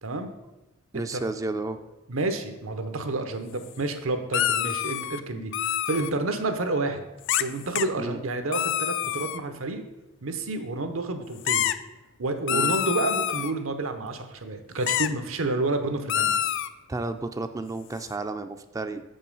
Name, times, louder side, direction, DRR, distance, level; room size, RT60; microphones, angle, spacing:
voice 1, 0.0-0.3 0.9-1.2 2.1-7.0 7.4-9.8 10.2-11.7 12.2-16.5, right 2 dB, 85° right, 8 dB, 0.9 m, -29 dB
voice 2, 0.9-1.9 8.0-8.2 12.5-12.8 16.9-19.0, right 2 dB, 15° right, 9 dB, 0.3 m, -32 dB
sound 1, 4.3-5.2 5.5-6.1 7.3-7.5 7.7-7.9 8.5-9.4 11.5-11.7 12.5-13.5 14.9-15.1 16.1-16.7, left 11 dB, 65° left, 0.4 m, -26 dB
7.1 x 5.4 x 5.4 m, 1.0 s
head